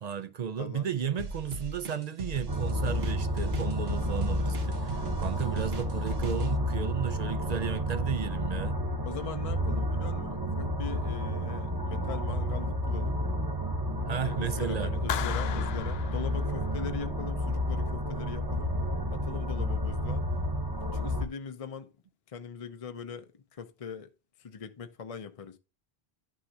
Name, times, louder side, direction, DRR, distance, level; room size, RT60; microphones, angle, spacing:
voice 1, 0.0-8.8 14.1-14.9, right 8 dB, 50° right, 0.5 m, -34 dB
voice 2, 0.6-0.9 4.0-4.2 9.0-13.2 14.2-18.7 19.1-20.3 20.9-21.9 22.3-24.1 24.4-25.6, left 6 dB, 40° left, 0.6 m, -41 dB
sound 1, 1.2-6.5, right 3 dB, 75° right, 1.4 m, -38 dB
sound 2, 2.5-21.3, equal, 20° right, 0.9 m, -31 dB
Clapping, 15.1-17.0, left 10 dB, 75° left, 0.8 m, -37 dB
11.0 x 6.4 x 2.7 m
omnidirectional pair, 1.0 m